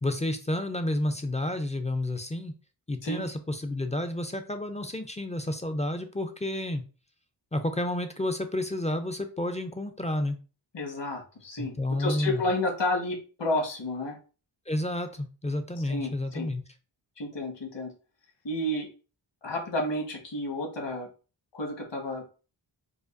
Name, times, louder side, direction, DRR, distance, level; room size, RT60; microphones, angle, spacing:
voice 1, 0.0-2.5 2.9-6.8 7.5-10.4 11.6-12.5 14.7-16.6, left 1 dB, 15° left, 7 dB, 0.4 m, -30 dB
voice 2, 10.7-14.2 15.9-16.5 17.2-17.9 18.4-18.9 19.4-21.1 21.5-22.3, left 1 dB, 65° left, 1 dB, 1.3 m, -31 dB
4.9 x 2.3 x 2.5 m, 0.35 s
wide cardioid pair, 95°, 47 cm